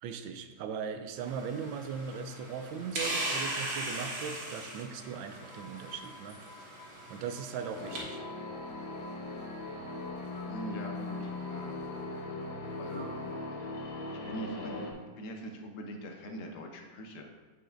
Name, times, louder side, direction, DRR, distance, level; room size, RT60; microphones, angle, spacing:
voice 1, 0.0-6.8 7.1-8.2, right 6 dB, 80° right, 8 dB, 1.3 m, -39 dB
sound 1, 1.2-8.0, right 1 dB, 60° right, 2.0 m, -39 dB
sound 2, 5.2-13.4, left 1 dB, 15° left, 0.8 m, -52 dB
sound 3, 7.8-14.9, left 2 dB, 80° left, 1.6 m, -39 dB
voice 2, 10.4-11.8 12.8-13.3 14.1-14.9 15.2-17.3, right 1 dB, 60° left, 3 dB, 0.8 m, -42 dB
8.6 x 5.4 x 2.5 m, 1.3 s
omnidirectional pair, 2.1 m